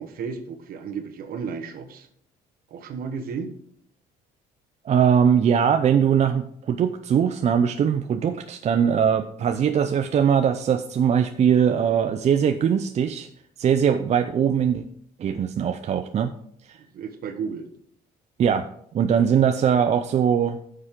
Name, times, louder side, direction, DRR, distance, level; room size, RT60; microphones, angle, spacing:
voice 1, 0.0-2.1 2.7-3.5 16.8-17.7, right 6 dB, 60° right, 6 dB, 1.2 m, -33 dB
voice 2, 4.8-13.3 13.6-14.8 15.2-16.3 16.7-16.8 18.4-18.7 18.9-20.6, right 8 dB, 40° right, 8 dB, 0.5 m, -21 dB
9.2 x 6.6 x 3.7 m, 0.66 s
cardioid pair, 110°, 17 cm